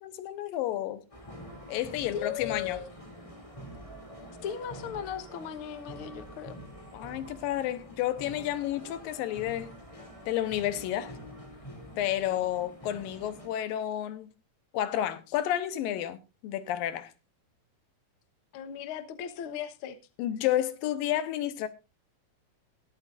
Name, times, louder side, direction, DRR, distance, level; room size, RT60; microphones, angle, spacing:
voice 1, 0.0-1.0 1.7-2.8 6.9-9.7 10.3-11.2 12.0-14.3 14.7-17.1 20.2-21.7, left 12 dB, 80° left, 2.6 m, -31 dB
sound 1, 1.1-13.5, equal, 10° left, 2.4 m, -46 dB
voice 2, 2.1-2.9 4.4-6.5 18.5-20.0, left 9 dB, 65° left, 1.3 m, -37 dB
22.0 x 8.5 x 2.5 m
omnidirectional pair, 4.0 m